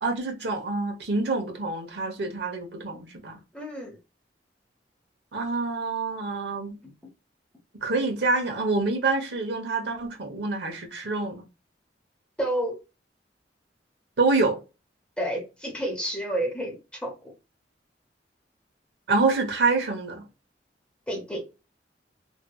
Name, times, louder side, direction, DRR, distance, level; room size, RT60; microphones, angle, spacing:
voice 1, 0.0-3.4 5.3-6.8 7.8-11.5 14.2-14.6 19.1-20.3, right 3 dB, 70° right, 0.9 m, -26 dB
voice 2, 3.5-4.0 6.8-6.9 12.4-12.8 15.2-17.3 21.1-21.5, right 1 dB, 5° left, 0.9 m, -30 dB
3.2 x 2.9 x 2.3 m
head